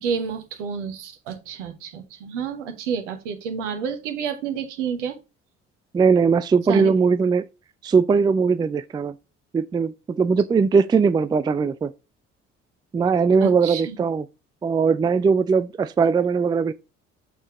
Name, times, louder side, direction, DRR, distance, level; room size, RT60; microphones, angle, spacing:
voice 1, 0.0-5.2 6.7-6.9 13.4-14.0, right 6 dB, 70° right, 1.3 m, -29 dB
voice 2, 5.9-7.4 7.8-9.1 9.5-11.9 12.9-14.2 14.6-16.7, right 5 dB, 10° right, 0.4 m, -20 dB
6.8 x 5.6 x 3.1 m
figure-of-eight pair, 45°, 37 cm